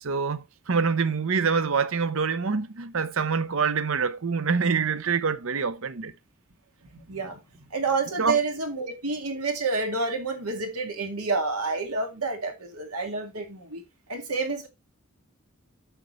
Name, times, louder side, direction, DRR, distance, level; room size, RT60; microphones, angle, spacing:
voice 1, 0.0-6.1 8.2-8.4, right 5 dB, 65° right, 0.7 m, -25 dB
voice 2, 6.9-7.4 7.7-13.8 14.1-14.7, right 3 dB, 85° right, 2.1 m, -29 dB
9.0 x 6.8 x 3.1 m
head